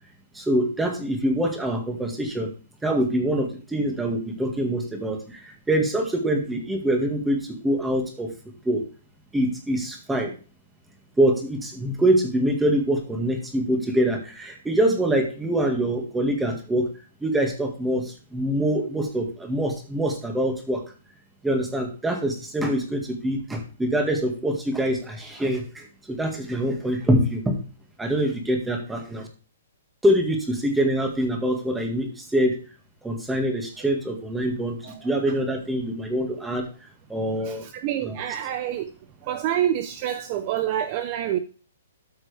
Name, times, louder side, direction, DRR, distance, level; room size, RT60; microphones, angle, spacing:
voice 1, 0.4-2.5 2.8-5.4 5.7-8.3 8.7-8.8 9.3-10.3 11.2-16.9 17.2-18.0 18.3-20.8 21.4-27.6 28.0-29.3 30.0-32.6 33.0-34.8 35.0-36.6 37.1-37.7 38.0-38.2, right 1 dB, 5° right, 1.9 m, -24 dB
voice 2, 37.4-38.9 39.2-41.4, right 11 dB, 35° right, 0.7 m, -27 dB
13.0 x 6.0 x 3.4 m
hypercardioid pair, 160°, 0 cm